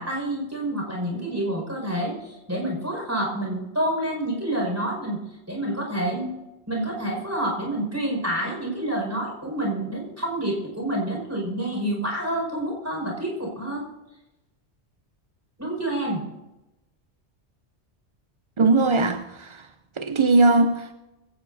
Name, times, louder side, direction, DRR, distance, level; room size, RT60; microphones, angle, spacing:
voice 1, 0.0-5.2 5.5-6.3 6.7-13.8 15.6-16.2, right 1 dB, 15° right, 5.4 m, -28 dB
voice 2, 18.6-19.7 20.0-20.9, right 3 dB, 40° right, 0.4 m, -20 dB
24.0 x 16.5 x 2.7 m
omnidirectional pair, 1.1 m